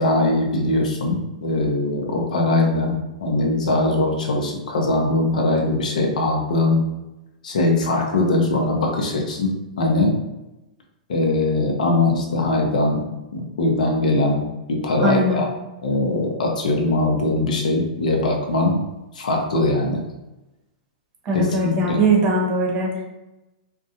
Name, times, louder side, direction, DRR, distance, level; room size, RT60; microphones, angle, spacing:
voice 1, 0.0-6.8 7.4-10.1 11.1-14.4 14.7-15.5 15.8-18.8 19.1-20.0 21.3-22.0, left 2 dB, 75° left, 1 dB, 0.6 m, -21 dB
voice 2, 15.0-15.4 21.2-23.0, right 2 dB, 35° right, -1 dB, 0.8 m, -20 dB
2.5 x 2.2 x 2.6 m, 0.99 s
hypercardioid pair, 110°, 4 cm